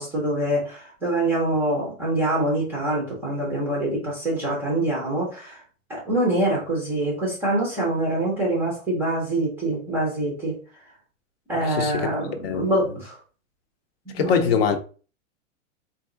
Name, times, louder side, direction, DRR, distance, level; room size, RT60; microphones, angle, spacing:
voice 1, 0.0-5.6 5.9-10.6 11.5-13.2 14.1-14.6, right 1 dB, 5° right, 0.5 m, -25 dB
voice 2, 11.7-12.1 12.4-12.7 14.1-14.8, left 6 dB, 50° left, 0.6 m, -23 dB
4.0 x 2.5 x 3.7 m
supercardioid pair, 165°, 40 cm